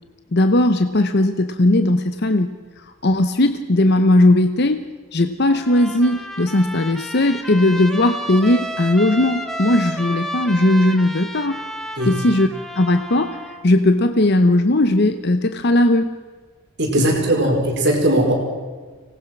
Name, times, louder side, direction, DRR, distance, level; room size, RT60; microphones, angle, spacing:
voice 1, 0.3-4.8 5.1-11.6 12.1-12.5 12.7-16.1 17.0-17.1, left 1 dB, 50° left, 9 dB, 0.8 m, -17 dB
Trumpet, 5.5-13.7, right 1 dB, ahead, 1.5 m, -32 dB
voice 2, 16.8-18.3, right 1 dB, 50° right, 0 dB, 4.7 m, -18 dB
24.0 x 19.0 x 6.0 m, 1.4 s
head